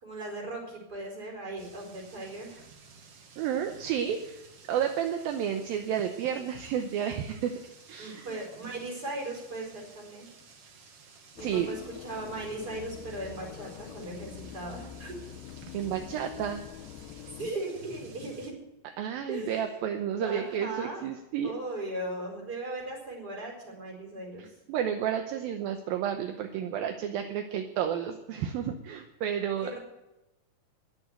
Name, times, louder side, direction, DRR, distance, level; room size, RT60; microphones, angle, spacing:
voice 1, 0.0-2.6 8.0-10.3 11.4-15.2 17.4-18.5 19.3-19.8 20.2-21.0 21.4-24.5 29.6-29.8, right 2 dB, 25° right, 0 dB, 4.6 m, -38 dB
sound 1, 1.6-18.5, right 4 dB, 50° right, 1.8 m, -54 dB
voice 2, 3.4-4.4 4.7-7.5 7.9-8.4 11.4-11.7 15.7-16.6 19.0-21.5 24.4-29.8, right 9 dB, 75° right, 6 dB, 2.4 m, -31 dB
sound 2, 11.4-17.5, left 10 dB, 90° left, 3.0 m, -45 dB
21.0 x 7.0 x 7.9 m, 0.96 s
omnidirectional pair, 4.9 m